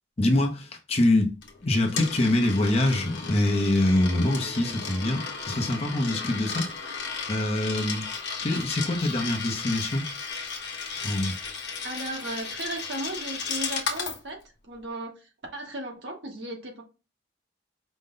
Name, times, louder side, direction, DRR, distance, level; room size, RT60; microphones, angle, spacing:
voice 1, 0.2-1.4 1.6-6.7 7.3-8.1 8.4-10.1 11.0-11.4, left 1 dB, 35° left, 0.7 m, -24 dB
Coin (dropping), 1.4-14.2, left 5 dB, 70° left, 1.0 m, -35 dB
voice 2, 11.8-14.4 14.7-16.8, right 1 dB, 70° right, 1.2 m, -36 dB
5.1 x 2.1 x 3.8 m
head